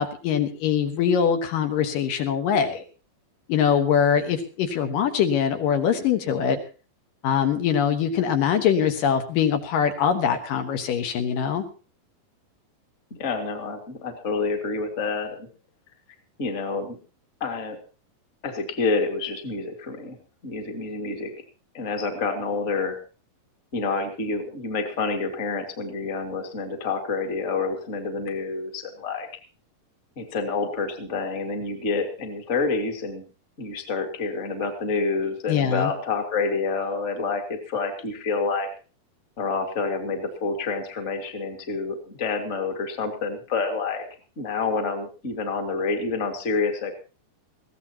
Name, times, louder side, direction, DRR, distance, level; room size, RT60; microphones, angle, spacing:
voice 1, 0.0-2.8 3.5-6.6 7.2-11.6 35.5-35.9, left 7 dB, 70° left, 6 dB, 2.9 m, -23 dB
voice 2, 13.1-15.5 16.4-17.0 17.4-17.8 18.4-20.2 20.4-21.3 21.7-23.0 23.7-29.3 30.1-33.2 33.6-38.7 39.4-44.0 44.3-46.9, left 4 dB, 25° left, 3 dB, 1.7 m, -28 dB
21.5 x 15.5 x 2.9 m, 0.34 s
omnidirectional pair, 4.2 m